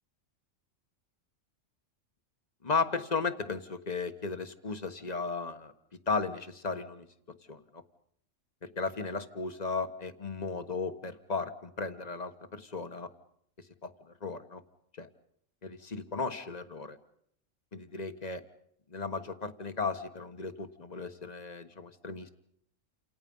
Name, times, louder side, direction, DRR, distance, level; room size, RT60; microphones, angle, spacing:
voice 1, 2.6-5.7 6.1-7.1 7.5-7.8 8.6-13.1 13.8-14.6 15.0-15.1 15.6-17.0 17.7-18.4 18.9-22.3, left 4 dB, 35° left, 9 dB, 1.5 m, -35 dB
29.5 x 27.0 x 5.5 m, 0.72 s
omnidirectional pair, 1.3 m